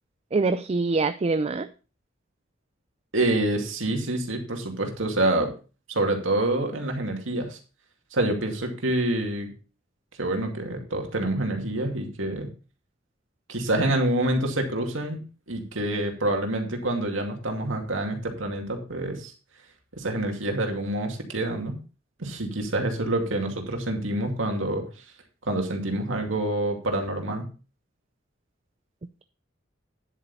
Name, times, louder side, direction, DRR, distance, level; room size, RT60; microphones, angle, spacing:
voice 1, 0.3-1.7, right 3 dB, 30° right, 11 dB, 0.4 m, -24 dB
voice 2, 3.1-5.5 5.9-7.6 8.1-9.5 10.2-12.5 13.5-15.2 15.5-19.3 20.0-21.8 22.2-24.8 25.5-27.5, right 1 dB, 80° right, 3 dB, 2.4 m, -27 dB
10.0 x 8.2 x 4.1 m, 0.36 s
head